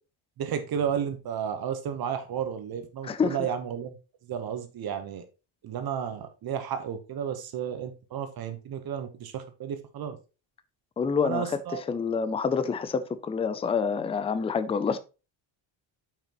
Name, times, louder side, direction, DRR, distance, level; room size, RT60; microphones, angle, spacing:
voice 1, 0.4-4.0 4.3-5.2 5.6-10.2 11.2-11.8, right 8 dB, 45° right, 1.1 m, -32 dB
voice 2, 3.0-3.4 11.0-11.6 11.9-15.0, left 5 dB, 15° left, 0.3 m, -27 dB
8.8 x 5.9 x 3.0 m
cardioid pair, 175°, 48 cm